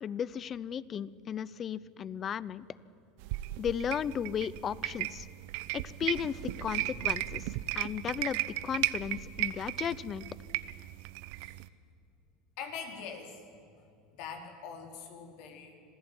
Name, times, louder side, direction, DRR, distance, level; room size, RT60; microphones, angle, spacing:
voice 1, 0.0-2.6 3.6-5.3 6.0-7.4 7.7-10.2, left 8 dB, 35° left, 20 dB, 0.7 m, -35 dB
sound 1, 3.2-11.7, right 18 dB, 70° right, 0.8 m, -36 dB
voice 2, 6.7-7.1 11.4-11.6 12.6-13.4 14.1-15.7, left 6 dB, 65° left, 4 dB, 4.3 m, -44 dB
26.0 x 16.0 x 9.6 m, 2.4 s
supercardioid pair, 120°, 0 cm